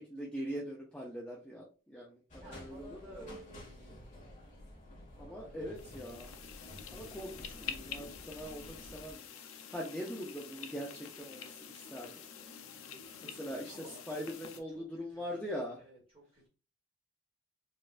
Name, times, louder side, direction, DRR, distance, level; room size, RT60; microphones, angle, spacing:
voice 1, 0.0-3.2 5.2-6.3 6.9-12.3 13.2-15.8, equal, 5° left, -4 dB, 0.4 m, -42 dB
sound 1, 2.3-9.1, left 1 dB, 35° left, 1.3 m, -51 dB
voice 2, 2.4-4.1 5.2-6.1 13.7-16.5, right 1 dB, 25° right, -2 dB, 1.3 m, -55 dB
sound 2, 5.8-14.6, left 7 dB, 80° left, 0.5 m, -47 dB
4.2 x 2.4 x 2.4 m, 0.35 s
head